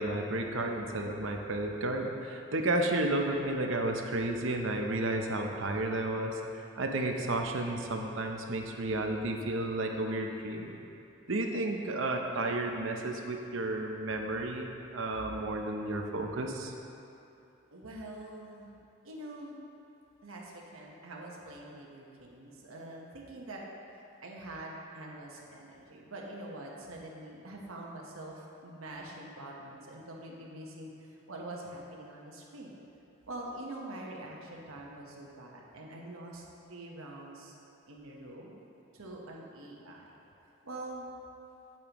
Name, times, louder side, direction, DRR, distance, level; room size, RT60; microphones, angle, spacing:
voice 1, 0.0-10.8 11.3-16.7, right 2 dB, 70° right, 3 dB, 0.7 m, -32 dB
voice 2, 17.7-18.8 19.0-19.6 20.2-23.6 24.2-32.8 33.3-37.5 37.9-38.6 38.9-40.0 40.6-41.1, right 1 dB, 85° right, -2 dB, 1.2 m, -45 dB
8.7 x 8.7 x 3.0 m, 2.8 s
head